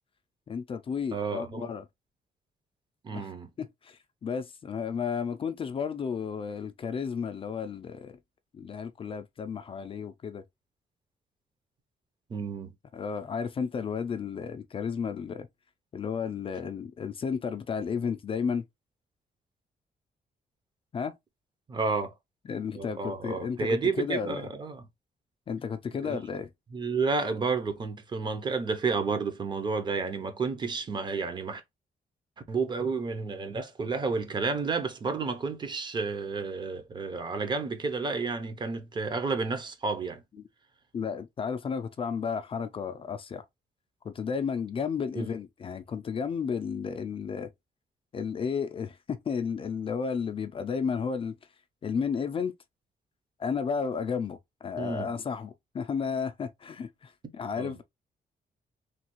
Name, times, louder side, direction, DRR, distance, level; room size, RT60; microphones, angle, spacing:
voice 1, 0.5-1.8 3.1-3.3 3.6-8.2 8.5-10.4 12.9-15.5 15.9-18.6 20.9-21.2 22.5-24.5 25.5-26.5 40.9-43.4 44.0-47.5 48.1-51.4 51.8-52.5 53.4-57.8, left 6 dB, 35° left, 0.4 m, -33 dB
voice 2, 1.1-1.7 3.0-3.5 12.3-12.7 21.7-22.1 22.8-24.8 26.0-26.2 26.7-31.6 32.5-40.2 45.1-45.3 54.8-55.1 57.6-57.7, right 4 dB, 30° right, 0.6 m, -31 dB
3.2 x 2.3 x 3.0 m
wide cardioid pair, 150°, 16 cm